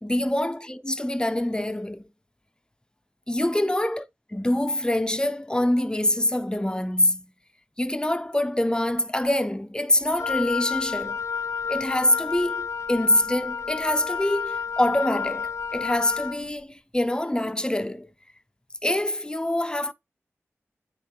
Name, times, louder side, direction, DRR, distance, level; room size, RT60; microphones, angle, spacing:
voice 1, 0.0-2.0 3.3-4.0 4.3-7.2 7.8-11.2 11.7-18.1 18.8-19.9, left 1 dB, 15° left, 0.8 m, -25 dB
Wind instrument woodwind instrument, 10.2-16.4, left 6 dB, 65° left, 0.6 m, -30 dB
9.2 x 3.3 x 4.8 m
cardioid pair, 40°, 5 cm